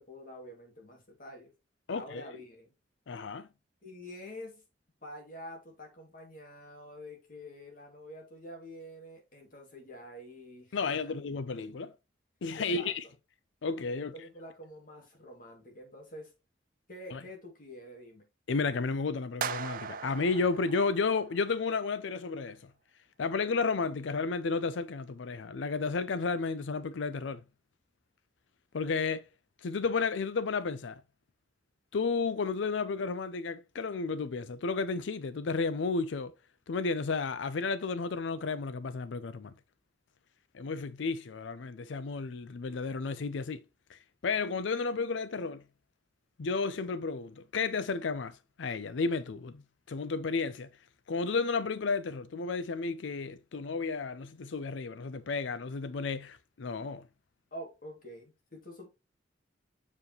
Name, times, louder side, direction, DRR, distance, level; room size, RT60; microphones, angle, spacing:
voice 1, 0.0-1.5 1.9-2.7 3.8-4.6 5.0-11.1 12.6-12.9 14.1-16.3 16.9-18.3 57.5-58.9, equal, 50° left, 2.4 m, -47 dB
voice 2, 1.9-2.3 3.1-3.5 10.7-11.9 12.4-13.0 13.6-14.1 17.1-17.2 18.5-22.7 23.2-27.4 28.7-29.3 29.6-31.0 31.9-36.3 36.7-39.5 40.5-43.6 43.9-45.6 46.4-49.6 49.9-50.7 51.1-57.1, left 4 dB, 85° left, 0.5 m, -32 dB
sound 1, 19.4-21.6, right 7 dB, 50° right, 0.4 m, -39 dB
7.0 x 4.7 x 3.0 m
head